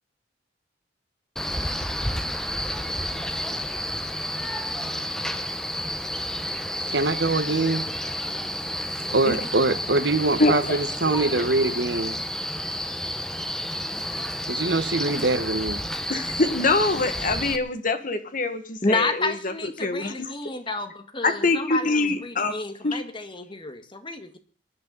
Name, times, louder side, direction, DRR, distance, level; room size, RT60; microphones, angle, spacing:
Male speech man speaking, 1.4-17.6, equal, 5° left, 1.3 m, -30 dB
voice 1, 6.9-7.9 9.1-10.6 11.0-12.1 14.5-15.8, right 2 dB, 70° right, 11 dB, 1.4 m, -23 dB
voice 2, 10.4-10.8 16.1-20.3 21.2-22.6 22.8-23.0, left 3 dB, 50° left, 9 dB, 1.9 m, -24 dB
voice 3, 18.8-24.4, left 3 dB, 30° left, 8 dB, 1.9 m, -30 dB
24.0 x 11.5 x 4.1 m, 0.41 s
head